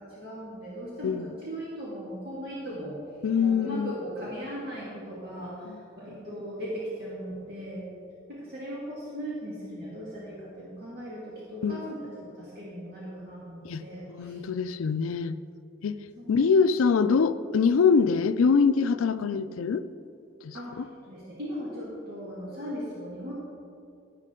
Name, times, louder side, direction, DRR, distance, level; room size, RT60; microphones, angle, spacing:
voice 1, 0.0-3.0 3.4-7.9 8.3-14.4 16.2-16.4 20.5-23.3, equal, 50° right, -7 dB, 1.9 m, -38 dB
voice 2, 3.2-3.9 5.6-5.8 11.6-11.8 13.6-15.4 15.8-19.8 20.4-20.9, left 5 dB, 90° left, 13 dB, 0.4 m, -24 dB
11.0 x 10.5 x 3.7 m, 2.5 s
head